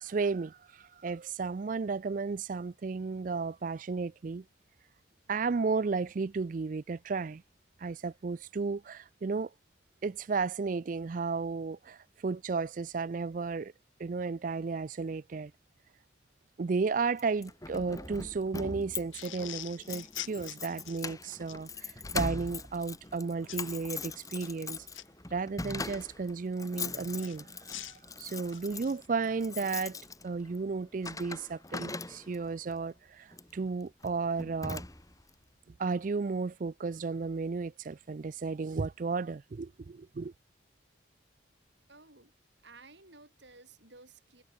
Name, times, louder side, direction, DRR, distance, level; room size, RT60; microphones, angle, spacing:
voice 1, 0.0-4.4 5.3-7.4 7.8-9.5 10.0-13.7 14.0-15.5 16.6-24.9 25.3-27.5 27.9-30.0 30.2-34.8 35.8-40.3, right 4 dB, 40° right, 0.4 m, -33 dB
Keys jangling, 17.2-32.5 33.3-33.6 34.0-34.1 34.4-35.3, left 3 dB, 15° left, 2.6 m, -41 dB
sound 1, 19.1-21.6 23.5-23.7 24.3-25.0 27.2-29.1, left 14 dB, 85° left, 1.0 m, -44 dB
voice 2, 41.9-42.3 42.6-44.4, right 3 dB, 65° right, 7.6 m, -55 dB
head